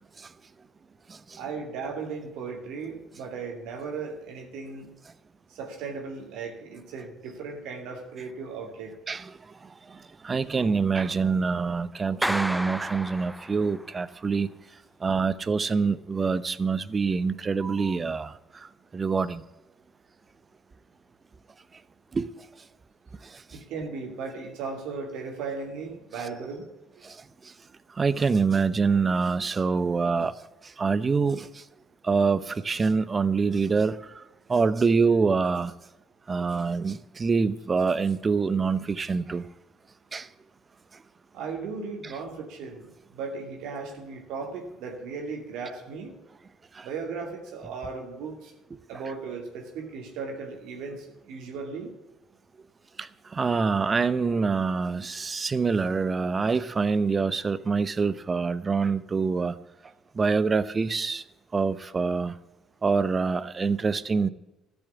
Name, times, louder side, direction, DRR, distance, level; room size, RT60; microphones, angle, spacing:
voice 1, 1.4-4.9 5.5-8.9 23.5-26.6 41.3-46.2 46.8-48.6 48.9-51.9, right 4 dB, 70° right, 2 dB, 2.4 m, -36 dB
voice 2, 10.2-14.5 15.0-18.3 18.9-19.4 22.1-22.3 27.0-27.1 28.0-30.3 30.8-31.5 32.0-34.0 34.5-35.7 36.3-39.4 40.1-40.3 42.0-42.1 46.8-46.9 53.0-59.5 60.2-61.2 61.5-62.3 62.8-64.3, right 4 dB, 35° right, 16 dB, 0.8 m, -25 dB
Clapping, 12.2-14.0, equal, 5° right, 0.4 m, -31 dB
13.5 x 7.1 x 8.5 m, 0.99 s
hypercardioid pair, 55°, 0 cm